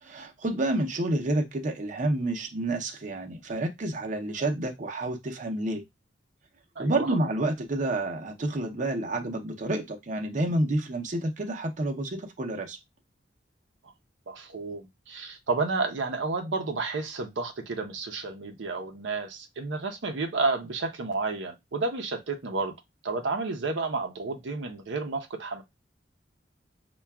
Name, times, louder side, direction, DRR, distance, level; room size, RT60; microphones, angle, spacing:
voice 1, 0.0-5.8 6.8-12.8, right 1 dB, 45° right, 0.6 m, -29 dB
voice 2, 6.8-7.1 14.3-22.7 23.0-25.6, right 3 dB, 85° right, 0.6 m, -31 dB
5.6 x 2.3 x 2.2 m
head